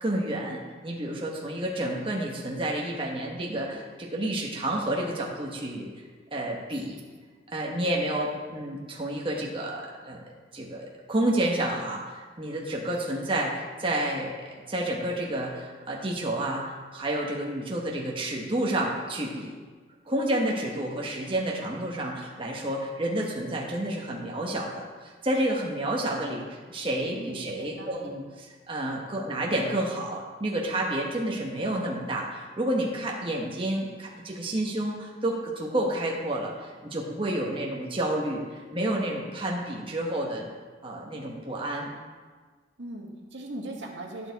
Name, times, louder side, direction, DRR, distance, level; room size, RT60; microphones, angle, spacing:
voice 1, 0.0-5.9 6.3-7.0 7.5-10.2 10.5-19.5 20.1-24.8 25.2-36.5 36.8-38.4 38.7-40.5 40.8-41.9, right 1 dB, 30° right, -2 dB, 1.1 m, -30 dB
voice 2, 27.1-28.1 42.8-44.3, right 2 dB, 80° right, 0 dB, 1.6 m, -39 dB
12.0 x 6.4 x 4.0 m, 1.5 s
head